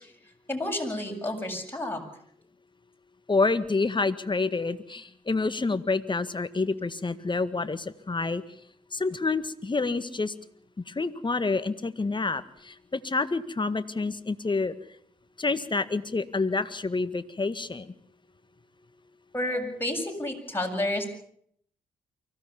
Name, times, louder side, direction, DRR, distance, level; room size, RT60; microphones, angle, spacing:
voice 1, 0.5-2.0 19.3-21.1, left 1 dB, 15° left, 1 dB, 7.6 m, -30 dB
voice 2, 3.3-8.4 8.9-10.3 10.9-14.7 15.4-17.9, left 3 dB, 30° left, 13 dB, 1.8 m, -28 dB
24.5 x 17.0 x 7.2 m, 0.66 s
hypercardioid pair, 45°, 16 cm